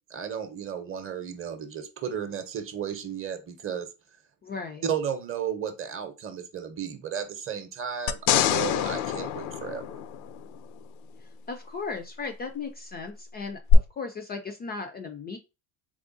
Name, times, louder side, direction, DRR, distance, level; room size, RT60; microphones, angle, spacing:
voice 1, 0.1-3.9 4.8-9.8, right 8 dB, 30° right, 8 dB, 0.7 m, -34 dB
voice 2, 4.4-4.9 11.2-15.4, left 4 dB, 25° left, 6 dB, 0.3 m, -36 dB
sound 1, 8.1-10.6 13.7-13.8, left 12 dB, 75° left, 0.5 m, -25 dB
3.6 x 3.3 x 2.5 m, 0.28 s
supercardioid pair, 105°, 43 cm